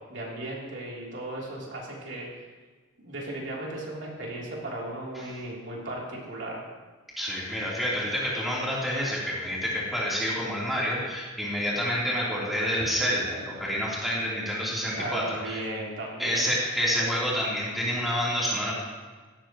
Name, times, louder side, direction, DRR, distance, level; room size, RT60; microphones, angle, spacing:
voice 1, 0.1-2.4 3.0-6.6 15.0-16.5, right 1 dB, 70° right, -4 dB, 3.3 m, -36 dB
voice 2, 7.2-15.6 16.2-18.7, equal, ahead, -7 dB, 3.4 m, -28 dB
16.5 x 13.5 x 3.1 m, 1.4 s
head